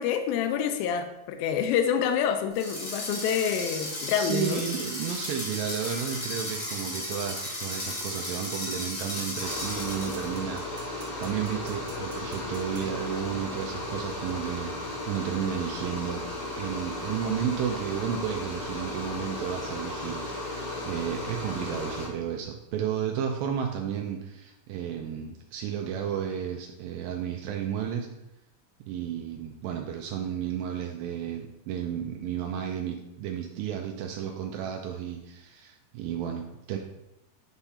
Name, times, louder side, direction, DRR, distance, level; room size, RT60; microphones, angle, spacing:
voice 1, 0.0-4.6, left 8 dB, 85° left, 6 dB, 2.3 m, -27 dB
sound 1, 2.5-10.3, left 1 dB, 35° left, 2.7 m, -35 dB
voice 2, 4.2-16.3 16.6-28.1 28.9-36.8, right 8 dB, 80° right, 3 dB, 2.3 m, -33 dB
sound 2, 6.4-6.6 9.3-12.9, right 4 dB, 65° right, 2.2 m, -50 dB
sound 3, 9.4-22.1, left 2 dB, 60° left, 4.1 m, -35 dB
8.9 x 3.6 x 4.2 m, 0.88 s
omnidirectional pair, 4.2 m